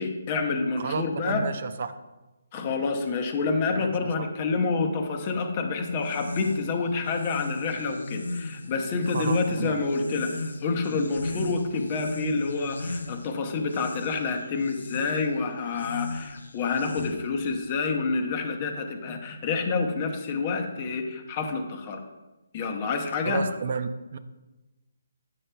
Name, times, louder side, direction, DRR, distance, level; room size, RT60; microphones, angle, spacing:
voice 1, 0.0-1.5 2.5-22.0 22.5-23.4, left 4 dB, 30° left, 5 dB, 0.7 m, -28 dB
voice 2, 0.8-1.9 3.8-4.3 9.1-9.8 23.2-24.2, right 5 dB, 50° right, 11 dB, 0.4 m, -32 dB
sound 1, 5.9-17.5, left 2 dB, 85° left, 0.6 m, -37 dB
8.5 x 6.6 x 2.2 m, 1.1 s
hypercardioid pair, 160°, 0 cm